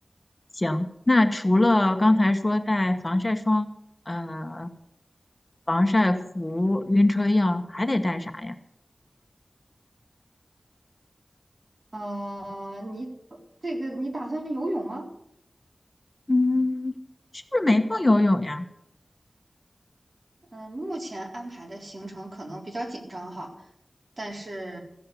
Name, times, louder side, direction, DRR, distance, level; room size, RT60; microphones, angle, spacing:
voice 1, 0.5-3.7 4.1-4.7 5.7-8.5 16.3-16.9 17.3-18.6, left 2 dB, 30° left, 7 dB, 1.1 m, -22 dB
voice 2, 11.9-13.1 13.6-15.1 20.5-23.5 24.2-24.8, right 1 dB, 60° right, 0 dB, 3.7 m, -34 dB
15.0 x 7.7 x 8.3 m, 0.77 s
wide cardioid pair, 55°, 0 cm